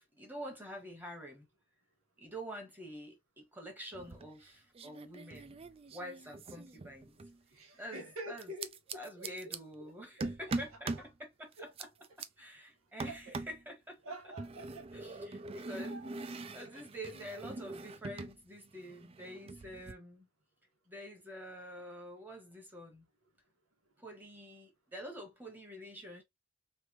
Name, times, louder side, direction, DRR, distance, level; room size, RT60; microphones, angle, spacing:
voice 1, 0.0-1.5 2.2-5.6 5.9-7.2 7.8-8.5 8.9-11.9 12.4-14.0 14.9-16.2 16.5-20.3 20.9-23.1 24.0-26.2, equal, 10° right, 1.2 m, -47 dB
sound 1, 3.9-4.5 4.8-7.4 8.4-9.6 10.2-11.1 11.5-12.3 13.0-13.6 14.4-18.4 18.6-19.9, right 3 dB, 25° right, 0.3 m, -42 dB
voice 2, 7.5-9.5 9.8-9.9 10.2-10.4 10.9-11.0 11.6-11.7 13.1-13.4 14.0-14.9 15.8-16.2 16.5-16.7 17.0-17.3, right 1 dB, 90° right, 1.6 m, -47 dB
3.3 x 3.3 x 3.0 m
head